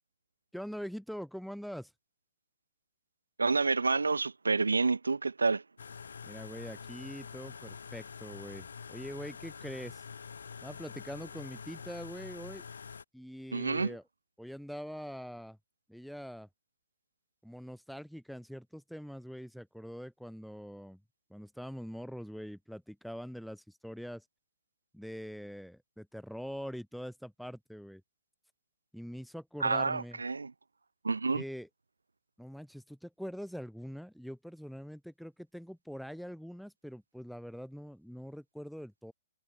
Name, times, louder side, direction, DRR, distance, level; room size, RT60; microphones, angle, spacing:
voice 1, 0.5-1.9 6.2-10.0 10.6-12.6 13.1-14.0 14.4-15.6 15.9-16.5 17.4-21.0 21.3-24.2 24.9-28.0 28.9-30.2 31.3-31.7 32.4-39.1, equal, ahead, 1.0 m, -43 dB
voice 2, 3.4-5.6 13.5-13.9 29.6-30.5 31.0-31.4, right 4 dB, 80° right, 0.6 m, -29 dB
sound 1, 5.8-13.0, left 6 dB, 70° left, 1.0 m, -46 dB
figure-of-eight pair, 125°, 0 cm